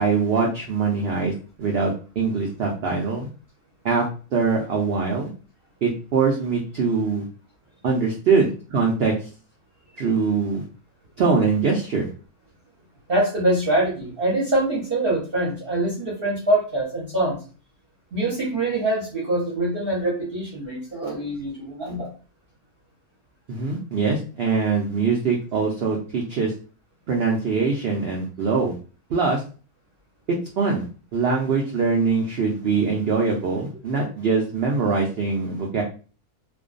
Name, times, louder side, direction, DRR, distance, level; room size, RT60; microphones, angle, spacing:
voice 1, 0.0-1.3 1.6-3.3 3.8-4.1 4.3-5.3 5.8-7.2 7.8-9.3 10.0-10.6 11.2-12.1 23.5-26.5 27.1-28.7 29.1-29.4 30.6-30.8 31.1-35.8, right 4 dB, 85° right, -1 dB, 0.5 m, -23 dB
voice 2, 13.1-17.4 18.1-22.1, right 1 dB, 45° right, -5 dB, 0.8 m, -24 dB
2.5 x 2.2 x 2.4 m, 0.37 s
omnidirectional pair, 1.6 m